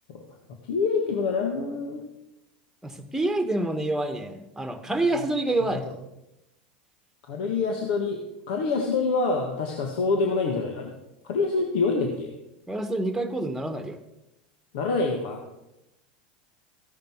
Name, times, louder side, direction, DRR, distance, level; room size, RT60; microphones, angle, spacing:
voice 1, 0.6-2.0 5.2-5.3 5.7-5.9 7.2-8.2 8.5-10.9 11.2-12.4 14.7-15.5, left 4 dB, 70° left, 2 dB, 1.7 m, -26 dB
voice 2, 2.8-5.8 12.7-14.0, right 2 dB, 5° right, 8 dB, 1.6 m, -27 dB
14.5 x 10.5 x 4.7 m, 0.91 s
hypercardioid pair, 90°, 5 cm